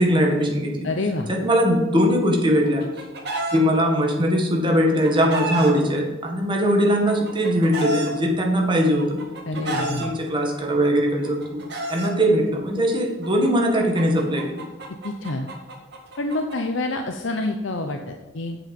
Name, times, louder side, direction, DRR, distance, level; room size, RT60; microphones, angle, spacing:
voice 1, 0.0-0.9 1.3-2.8 3.5-9.2 9.5-11.6 11.9-14.7, equal, 25° right, 1 dB, 1.7 m, -21 dB
voice 2, 0.8-1.3 9.5-10.1 15.0-15.5 16.2-18.6, left 2 dB, 70° left, 4 dB, 0.8 m, -27 dB
Chicken rooster, 2.5-3.6 4.7-5.7 6.7-8.1 9.0-10.1 11.1-12.1 13.2-16.6, right 2 dB, 55° right, 2.1 m, -30 dB
8.7 x 7.5 x 5.4 m, 1.2 s
head